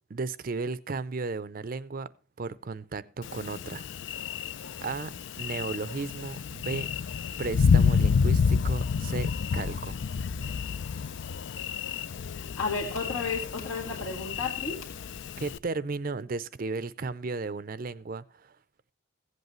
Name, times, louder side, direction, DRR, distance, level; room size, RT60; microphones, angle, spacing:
voice 1, 0.1-2.1 2.4-3.9 4.8-6.9 7.4-10.0 15.4-18.5, right 4 dB, 45° right, 0.5 m, -34 dB
Thunder, 3.2-15.6, left 6 dB, 60° left, 0.4 m, -29 dB
voice 2, 12.3-14.8, left 4 dB, 75° left, 1.8 m, -33 dB
15.5 x 8.1 x 3.0 m
head